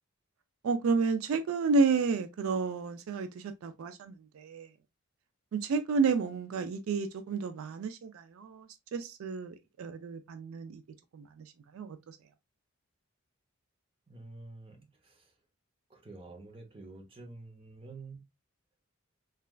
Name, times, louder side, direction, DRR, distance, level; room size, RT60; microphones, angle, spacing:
voice 1, 0.6-4.7 5.5-8.7 8.9-10.8 11.1-11.5 11.7-12.2, right 4 dB, 75° right, 0.3 m, -31 dB
voice 2, 14.1-15.3 15.9-18.2, right 3 dB, 25° right, 0.6 m, -48 dB
3.2 x 2.3 x 2.2 m
head